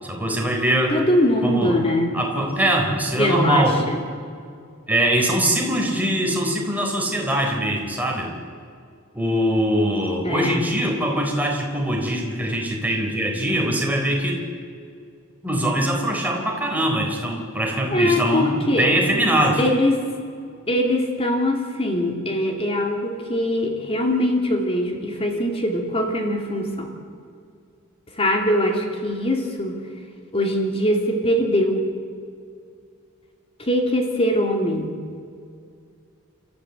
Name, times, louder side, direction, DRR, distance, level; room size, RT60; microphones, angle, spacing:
voice 1, 0.0-1.0 1.4-1.7 2.1-3.8 4.9-8.3 9.1-14.4 15.4-19.6, right 1 dB, 10° right, 0 dB, 3.8 m, -22 dB
voice 2, 0.9-2.2 3.1-4.0 10.2-10.7 17.9-18.9 19.6-20.0 20.7-26.9 28.2-29.8 30.3-31.9 33.6-35.0, left 1 dB, 30° left, 2 dB, 2.7 m, -22 dB
28.5 x 14.0 x 8.2 m, 2.3 s
head